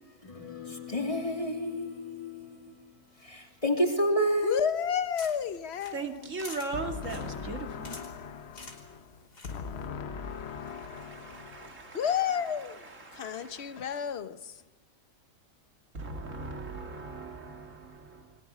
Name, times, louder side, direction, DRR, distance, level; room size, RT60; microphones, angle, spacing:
voice 1, 0.2-2.7 3.2-4.6, equal, 20° left, 3.2 m, -30 dB
voice 2, 4.4-6.4 6.7-11.6 11.9-14.6, left 7 dB, 45° left, 1.2 m, -34 dB
sound 1, 4.8-9.9, left 3 dB, 85° left, 4.0 m, -49 dB
voice 3, 5.9-7.9 10.3-12.0 12.9-13.8 15.9-18.4, right 3 dB, 50° right, 2.7 m, -39 dB
29.5 x 22.5 x 6.2 m
omnidirectional pair, 1.7 m